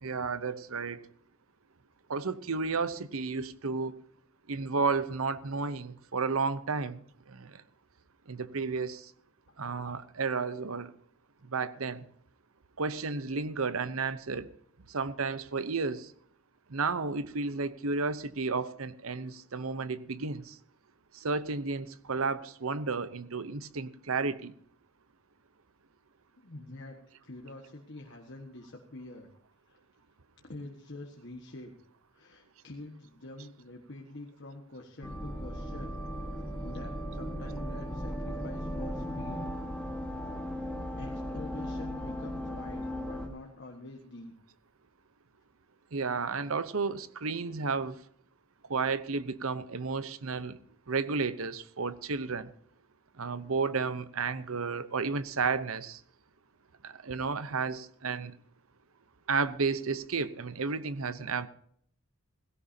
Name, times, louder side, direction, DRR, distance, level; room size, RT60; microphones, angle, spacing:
voice 1, 0.0-1.0 2.1-3.9 4.5-7.0 7.3-7.5 8.3-9.1 9.6-10.9 11.5-12.0 12.8-14.5 14.9-16.1 16.7-20.6 21.1-24.5 45.9-48.0 48.7-50.6 50.9-52.5 53.2-56.0 56.8-58.3 59.3-61.5, right 4 dB, 75° right, 0.8 m, -32 dB
voice 2, 26.4-29.3 29.7-29.8 30.4-31.7 32.1-39.5 41.0-44.3, left 2 dB, 55° left, 1.5 m, -46 dB
sound 1, 35.0-43.3, equal, 5° left, 1.5 m, -37 dB
17.0 x 16.5 x 2.8 m
head